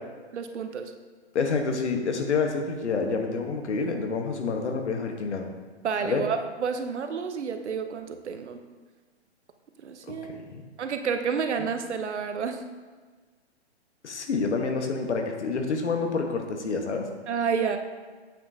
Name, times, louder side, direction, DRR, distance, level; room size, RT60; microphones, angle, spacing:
voice 1, 0.3-0.9 5.8-8.6 9.8-10.3 10.8-12.6 17.3-17.8, right 6 dB, 75° right, 7 dB, 0.9 m, -30 dB
voice 2, 1.3-5.5 6.0-6.2 10.1-10.2 10.5-10.6 14.0-17.0, left 4 dB, 75° left, 3 dB, 1.3 m, -28 dB
8.4 x 6.3 x 2.8 m, 1.4 s
hypercardioid pair, 155°, 35 cm